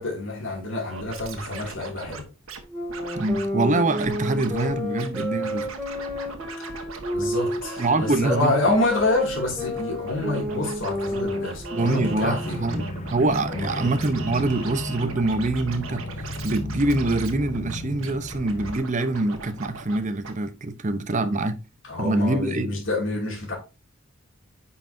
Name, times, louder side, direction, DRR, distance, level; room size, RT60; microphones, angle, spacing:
voice 1, 0.0-2.3 7.1-12.6 13.5-13.9 21.8-23.6, left 2 dB, 65° left, 2.5 m, -27 dB
Scratching (performance technique), 0.9-2.6 2.9-3.5 3.9-4.7 5.0-20.0 20.2-20.3, right 4 dB, 90° right, 1.4 m, -39 dB
sound 1, 2.7-12.7, left 1 dB, ahead, 2.3 m, -31 dB
voice 2, 3.1-5.7 7.8-8.6 11.7-16.0 16.4-21.6 22.0-22.8, right 2 dB, 35° right, 0.8 m, -25 dB
sound 2, 12.0-18.8, left 1 dB, 35° left, 0.7 m, -34 dB
9.6 x 5.7 x 2.7 m
head